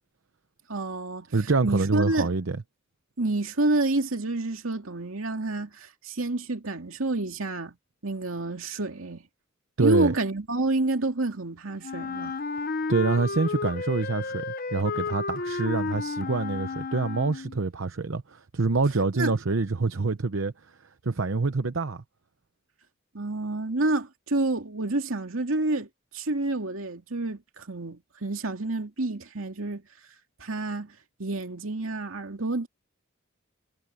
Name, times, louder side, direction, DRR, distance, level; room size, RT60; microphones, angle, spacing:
voice 1, 0.7-1.3 1.6-2.3 3.2-7.8 8.0-9.2 9.8-12.4 19.2-19.3 23.1-29.8 30.4-30.9 31.2-32.7, right 2 dB, 85° right, 2.4 m, -28 dB
voice 2, 1.3-2.6 9.8-10.1 12.9-20.5 21.0-22.0, right 3 dB, 70° right, 0.8 m, -26 dB
Wind instrument woodwind instrument, 11.8-17.6, left 4 dB, 45° left, 0.8 m, -32 dB
head